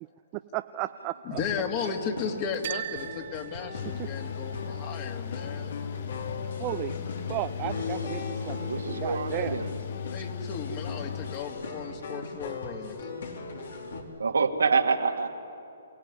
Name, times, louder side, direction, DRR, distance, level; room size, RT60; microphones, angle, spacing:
voice 1, 0.5-1.4 4.0-4.1 6.6-6.9 7.3-8.6 8.9-9.6, right 17 dB, 30° right, 9 dB, 0.6 m, -34 dB
voice 2, 1.3-5.7 10.1-13.1, left 6 dB, 35° left, 4 dB, 2.5 m, -35 dB
sound 1, 1.4-14.0, left 3 dB, 70° left, 3.3 m, -39 dB
sound 2, 2.6-4.6, right 12 dB, 55° right, 1.2 m, -39 dB
Mechanical fan, 3.7-12.2, left 9 dB, 55° left, 0.5 m, -37 dB
voice 3, 8.7-9.7 14.2-15.3, right 5 dB, 85° right, 4 dB, 2.1 m, -26 dB
28.0 x 16.5 x 9.8 m, 2.6 s
hypercardioid pair, 140°, 0 cm